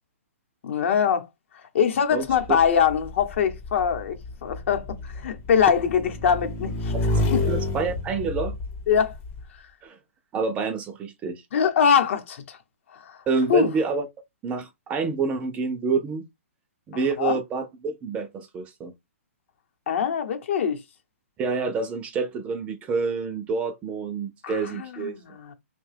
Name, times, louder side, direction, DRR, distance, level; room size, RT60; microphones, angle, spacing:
voice 1, 0.6-1.3 1.7-6.9 7.3-7.4 8.9-9.1 11.5-12.6 12.9-13.2 13.5-13.7 16.9-17.4 19.9-20.8 24.4-25.5, left 7 dB, 60° left, 0.8 m, -23 dB
Motorcycle / Engine, 2.3-9.4, left 2 dB, 25° left, 0.6 m, -29 dB
voice 2, 7.5-8.6 9.8-10.0 10.3-11.4 13.3-14.1 14.4-16.2 16.9-18.9 21.4-25.2, right 4 dB, 15° right, 0.4 m, -27 dB
2.7 x 2.2 x 3.2 m
hypercardioid pair, 150°, 8 cm